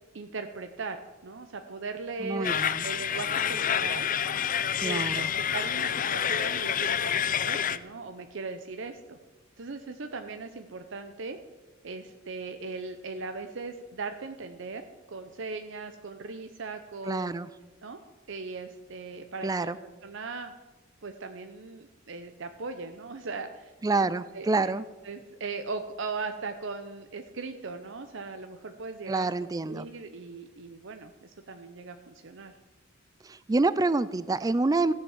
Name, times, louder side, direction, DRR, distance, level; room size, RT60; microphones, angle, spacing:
voice 1, 0.1-4.1 4.8-9.2 9.6-11.4 11.8-14.8 15.1-17.3 17.8-20.5 21.0-24.1 24.3-24.7 25.0-29.3 29.7-32.5, right 4 dB, 65° right, 7 dB, 0.7 m, -39 dB
voice 2, 2.2-2.9 4.8-5.3 17.0-17.5 19.4-19.8 23.8-24.8 29.1-29.9 33.2-34.9, right 3 dB, 20° right, 16 dB, 0.3 m, -27 dB
sound 1, 2.4-7.8, left 8 dB, 40° left, 0.5 m, -28 dB
15.0 x 8.6 x 7.3 m, 1.2 s
head